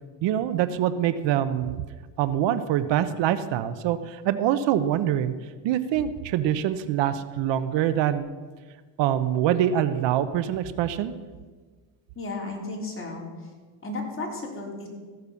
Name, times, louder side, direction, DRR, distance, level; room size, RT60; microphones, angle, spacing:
voice 1, 0.2-1.8 2.2-5.3 5.6-8.3 9.0-11.1, right 11 dB, 70° right, 12 dB, 0.8 m, -24 dB
voice 2, 12.2-13.3 13.8-14.9, left 2 dB, 30° left, -1 dB, 3.6 m, -33 dB
15.0 x 6.8 x 6.8 m, 1.4 s
cardioid pair, 95°, 44 cm